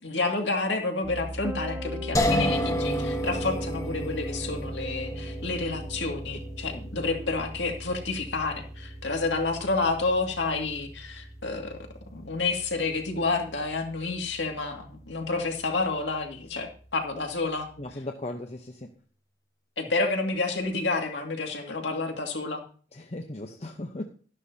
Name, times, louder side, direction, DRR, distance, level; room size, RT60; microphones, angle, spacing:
voice 1, 0.0-11.8 12.1-17.7 19.8-22.6, left 3 dB, 75° left, 3 dB, 2.2 m, -29 dB
Piano, 1.0-13.0, right 1 dB, 15° right, 1.4 m, -38 dB
sound 1, 2.1-15.2, equal, 15° left, 1.1 m, -35 dB
voice 2, 6.7-7.1 17.8-18.9 22.9-24.0, left 1 dB, 35° left, 4 dB, 0.8 m, -37 dB
13.0 x 11.5 x 2.8 m, 0.41 s
head